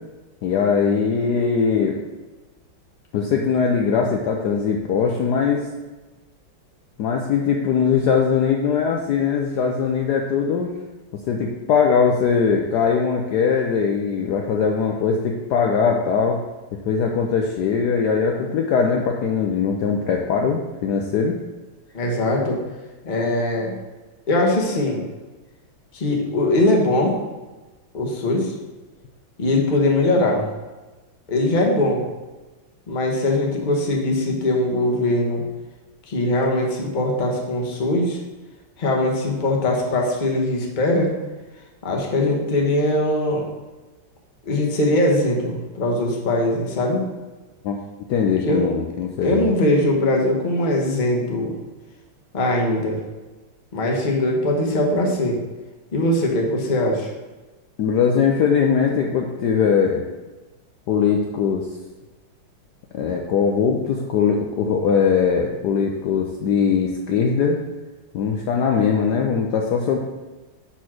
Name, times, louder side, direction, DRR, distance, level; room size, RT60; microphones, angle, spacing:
voice 1, 0.4-2.0 3.1-5.6 7.0-10.7 11.3-16.4 16.9-21.3 47.6-47.8 48.1-49.5 57.8-60.0 60.9-61.7 62.9-67.6 68.1-70.0, left 6 dB, 70° left, 1 dB, 1.1 m, -20 dB
voice 2, 21.9-22.6 23.0-23.7 24.3-25.0 25.9-27.2 27.9-28.5 29.4-30.5 31.3-32.1 32.9-35.4 36.1-38.2 38.8-41.1 41.8-43.5 44.5-47.0 48.4-48.7 49.2-51.6 52.3-53.0 53.7-55.4 55.9-57.1, left 1 dB, 30° left, 0 dB, 1.0 m, -21 dB
5.6 x 4.5 x 6.1 m, 1.2 s
omnidirectional pair, 2.2 m